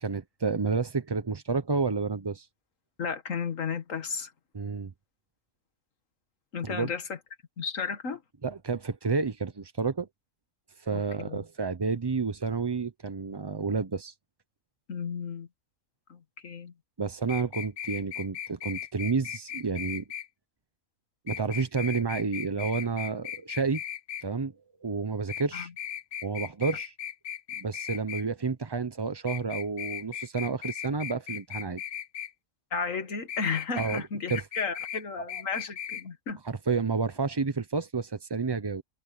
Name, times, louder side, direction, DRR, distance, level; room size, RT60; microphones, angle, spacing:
voice 1, 0.0-2.5 4.5-4.9 6.6-6.9 8.4-10.1 10.8-14.1 17.0-20.0 21.3-23.8 24.2-24.5 24.8-25.7 26.2-26.9 27.6-31.8 33.8-34.0 34.3-34.5 36.4-38.8, right 4 dB, 30° right, 0.4 m, -30 dB
voice 2, 3.0-4.3 6.5-7.2 7.6-8.2 10.9-11.4 14.9-15.5 16.1-16.7 25.5-25.7 32.7-36.4, left 5 dB, 70° left, 2.0 m, -33 dB
sound 1, 17.3-20.3 21.3-24.2 25.3-28.2 29.3-32.3 33.3-34.0 34.3-35.0 35.3-36.0 36.3-36.4, left 9 dB, 50° left, 0.7 m, -37 dB
omnidirectional pair, 1.4 m